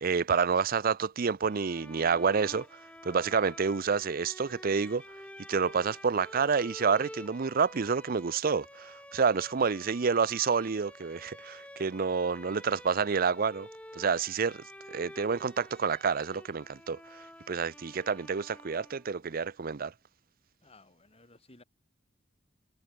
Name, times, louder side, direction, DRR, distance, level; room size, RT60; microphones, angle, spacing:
voice 1, 0.0-2.7 3.0-5.0 5.5-13.7 14.0-14.6 14.9-19.9, right 5 dB, 50° right, 0.6 m, -28 dB
Bowed string instrument, 1.4-19.2, left 1 dB, 5° left, 4.8 m, -49 dB
voice 2, 20.6-21.6, left 2 dB, 30° left, 4.5 m, -57 dB
head